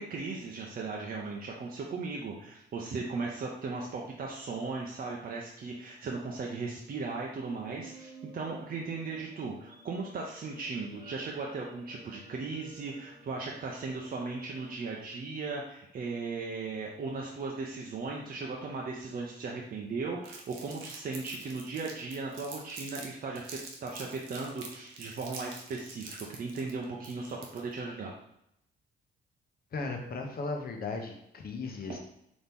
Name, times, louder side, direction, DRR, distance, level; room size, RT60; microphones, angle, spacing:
voice 1, 0.0-28.1, right 4 dB, 50° right, -2 dB, 0.7 m, -37 dB
sound 1, 7.6-14.8, right 2 dB, 20° right, 1.3 m, -54 dB
Crumpling crinkling, 20.2-23.1 23.3-27.8, right 4 dB, 75° right, 0.9 m, -46 dB
voice 2, 29.7-32.0, left 3 dB, 50° left, 3 dB, 0.9 m, -36 dB
4.2 x 3.0 x 3.5 m, 0.77 s
cardioid pair, 90°, 20 cm